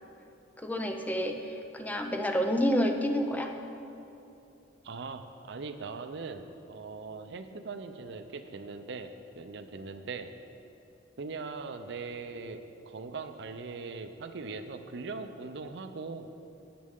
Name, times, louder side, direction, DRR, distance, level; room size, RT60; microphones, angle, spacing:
voice 1, 0.6-3.5, equal, 10° left, 4 dB, 0.5 m, -29 dB
voice 2, 4.8-10.3 11.2-16.3, right 4 dB, 65° right, 9 dB, 0.5 m, -40 dB
12.5 x 8.5 x 3.7 m, 2.9 s
head